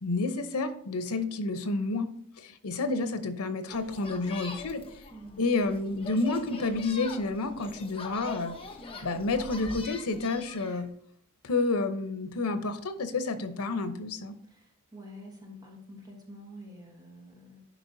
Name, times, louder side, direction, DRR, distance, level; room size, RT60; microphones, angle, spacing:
voice 1, 0.0-2.1 2.4-5.0 5.4-8.6 9.0-10.9 11.4-14.3, left 3 dB, 85° left, 10 dB, 0.8 m, -30 dB
sound 1, 3.7-10.8, left 3 dB, 25° left, 0.8 m, -43 dB
voice 2, 5.1-5.4 13.3-13.5 14.5-17.6, equal, 20° right, 0 dB, 1.2 m, -48 dB
10.0 x 4.7 x 2.7 m, 0.66 s
head